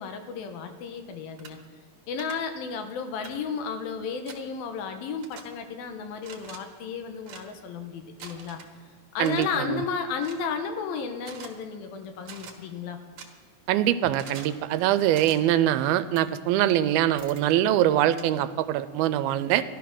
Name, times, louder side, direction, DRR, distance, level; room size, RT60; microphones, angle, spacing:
voice 1, 0.0-1.6 2.1-8.6 9.1-13.0, left 6 dB, 75° left, 6 dB, 2.8 m, -33 dB
sound 1, 1.4-1.5 2.2-2.3 3.2-3.4 4.3-4.4 5.2-5.4 6.2-6.6 7.2-7.4 8.2-8.7 9.2-9.5 10.2-10.4 11.2-11.5 12.2-12.5 13.2-13.3 14.2-14.5 15.1-15.4 16.2-16.3 17.2-17.4 18.2-18.3, right 7 dB, 60° right, 2.4 m, -44 dB
voice 2, 9.2-9.8 13.7-19.6, right 12 dB, 85° right, 13 dB, 2.4 m, -23 dB
14.5 x 12.0 x 6.0 m, 1.5 s
omnidirectional pair, 4.3 m